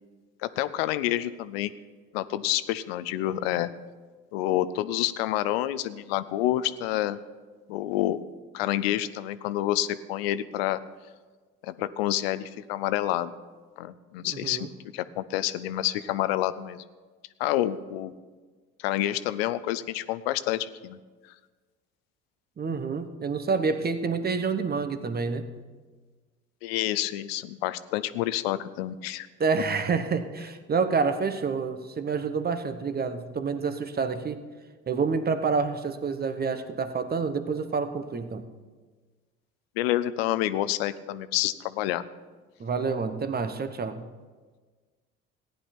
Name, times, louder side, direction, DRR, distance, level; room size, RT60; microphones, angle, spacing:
voice 1, 0.4-1.7 2.1-3.7 4.3-7.2 7.7-8.2 8.5-10.8 11.6-13.3 13.8-14.7 14.9-16.8 17.4-18.1 18.8-21.0 26.6-29.3 39.8-42.0, left 13 dB, 90° left, 15 dB, 0.6 m, -28 dB
voice 2, 14.2-14.7 22.6-25.5 29.4-34.4 34.9-38.4 42.6-44.1, right 5 dB, 30° right, 9 dB, 1.1 m, -28 dB
15.0 x 10.5 x 4.4 m, 1.4 s
supercardioid pair, 70°, 30 cm